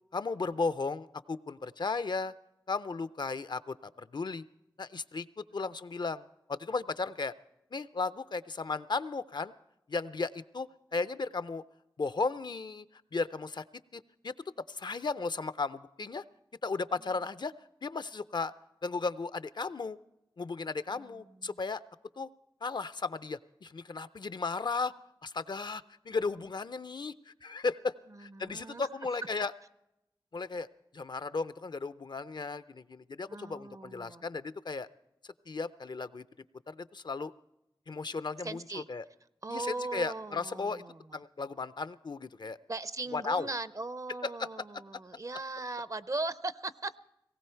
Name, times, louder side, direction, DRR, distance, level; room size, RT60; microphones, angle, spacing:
voice 1, 0.1-2.3 2.7-4.4 4.8-7.3 7.7-9.5 9.9-11.6 12.0-12.9 13.1-13.6 13.9-14.3 14.7-16.2 16.6-17.5 17.8-18.5 18.8-20.0 20.4-21.8 22.2-22.3 22.6-24.9 25.2-27.9 28.2-29.5 30.3-30.7 30.9-34.9 35.5-36.2 36.7-37.3 37.9-39.1 39.5-40.8 41.1-42.6 43.1-43.5 44.2-44.6, left 4 dB, 60° left, 15 dB, 0.5 m, -35 dB
voice 2, 20.9-21.6 28.1-28.9 33.3-34.2 38.4-38.9 39.4-41.2 42.7-47.0, right 2 dB, 40° right, 16 dB, 0.5 m, -39 dB
19.0 x 17.0 x 4.4 m, 0.85 s
wide cardioid pair, 75°, 9 cm